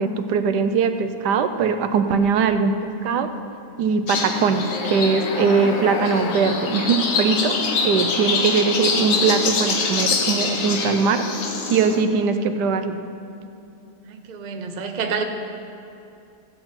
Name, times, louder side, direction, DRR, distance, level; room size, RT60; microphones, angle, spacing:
voice 1, 0.0-3.3 3.8-7.6 7.8-11.2 11.7-13.0, right 5 dB, 85° right, 9 dB, 1.2 m, -21 dB
sound 1, 4.1-12.0, left 4 dB, 90° left, 1.6 m, -24 dB
voice 2, 14.0-15.2, right 5 dB, 45° right, 4 dB, 0.6 m, -28 dB
15.5 x 8.0 x 4.4 m, 2.6 s
omnidirectional pair, 1.8 m